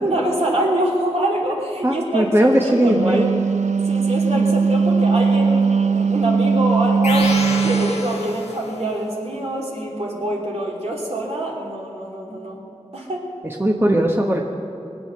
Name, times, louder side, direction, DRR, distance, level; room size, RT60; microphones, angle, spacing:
voice 1, 0.0-3.3 3.9-7.3 7.6-12.6 12.9-13.3, right 1 dB, 65° right, -3 dB, 3.0 m, -25 dB
voice 2, 1.8-3.2 4.3-4.5 13.4-14.4, right 1 dB, 20° right, 0 dB, 1.2 m, -18 dB
Wind instrument woodwind instrument, 2.7-8.0, right 5 dB, 90° right, 0.5 m, -19 dB
sound 1, 7.0-8.9, left 2 dB, 65° left, 1.5 m, -28 dB
21.0 x 8.6 x 6.7 m, 2.8 s
wide cardioid pair, 65°, 12 cm